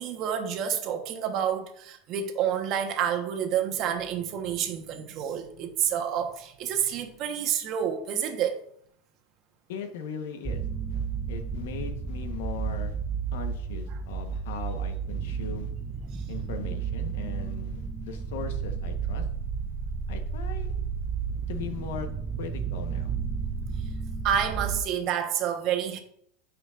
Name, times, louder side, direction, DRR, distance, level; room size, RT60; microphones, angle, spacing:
voice 1, 0.0-8.6 13.9-14.0 16.1-16.3 23.8-23.9 24.2-26.0, right 9 dB, 45° right, 1.1 m, -29 dB
voice 2, 9.7-10.6 10.9-13.0 13.3-15.7 16.3-19.2 20.1-20.7 21.5-22.1 22.4-23.1, left 6 dB, 85° left, 1.1 m, -39 dB
sound 1, 10.5-24.8, right 6 dB, 20° right, 0.5 m, -32 dB
10.0 x 5.0 x 2.5 m
supercardioid pair, 135°, 0 cm